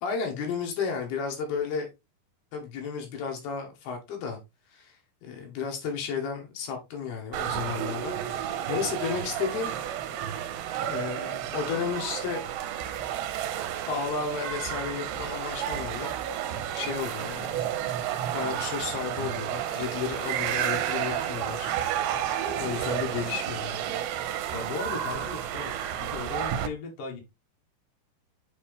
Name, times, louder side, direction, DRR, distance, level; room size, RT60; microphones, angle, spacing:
voice 1, 0.0-1.9 2.5-4.4 4.7-9.7 10.9-12.4 13.9-16.4 16.7-17.6 18.3-21.7 22.0-22.2 22.6-24.1, left 6 dB, 70° left, 3.1 m, -33 dB
sound 1, 7.3-26.7, right 10 dB, 85° right, 2.8 m, -31 dB
voice 2, 22.5-23.1 24.5-27.2, left 4 dB, 50° left, 2.0 m, -38 dB
7.4 x 4.2 x 3.5 m
omnidirectional pair, 4.9 m